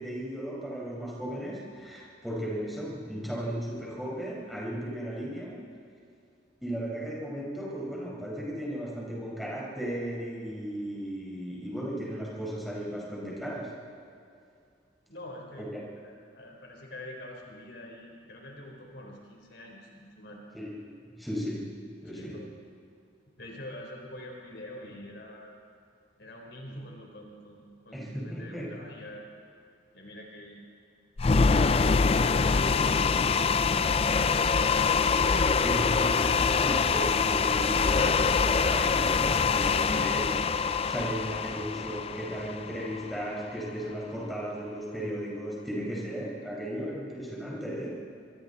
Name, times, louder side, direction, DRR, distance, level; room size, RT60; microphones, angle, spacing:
voice 1, 0.0-5.6 6.6-13.8 15.6-15.8 20.5-21.8 22.0-22.5 27.9-28.7 34.9-48.0, equal, ahead, -5 dB, 5.2 m, -36 dB
voice 2, 15.1-15.7 16.0-20.4 22.0-22.5 23.4-25.5 26.2-29.2 29.9-30.6, left 1 dB, 60° left, 0 dB, 4.2 m, -45 dB
sound 1, 31.2-43.3, left 5 dB, 30° left, 0.4 m, -25 dB
27.0 x 23.0 x 4.2 m, 2.4 s
head